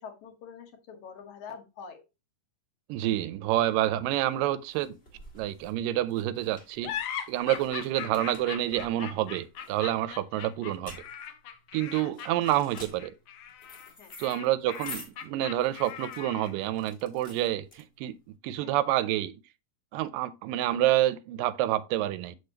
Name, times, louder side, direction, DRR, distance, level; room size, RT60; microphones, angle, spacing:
voice 1, 0.0-2.0 12.0-12.1 14.0-14.1 18.6-18.8, left 6 dB, 65° left, 2.3 m, -45 dB
voice 2, 2.9-5.0 5.4-6.9 7.3-11.0 11.7-13.1 14.2-19.4 19.9-22.4, right 13 dB, 85° right, 2.1 m, -28 dB
sound 1, 3.9-18.3, left 2 dB, 30° left, 1.1 m, -49 dB
sound 2, 6.8-16.7, left 9 dB, 90° left, 1.4 m, -40 dB
6.6 x 6.1 x 2.8 m
omnidirectional pair, 3.9 m